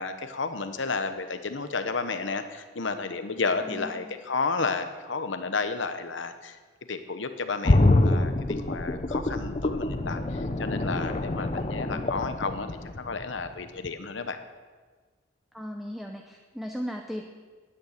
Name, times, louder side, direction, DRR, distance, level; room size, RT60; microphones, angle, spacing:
voice 1, 0.0-6.6 6.9-12.7 13.0-14.4, left 4 dB, 90° left, 9 dB, 1.0 m, -32 dB
voice 2, 3.6-4.2 11.6-12.1 15.5-17.2, equal, ahead, 3 dB, 0.6 m, -38 dB
sound 1, 7.6-13.5 13.8-13.9, left 2 dB, 35° left, 0.7 m, -26 dB
11.5 x 9.4 x 6.5 m, 1.4 s
head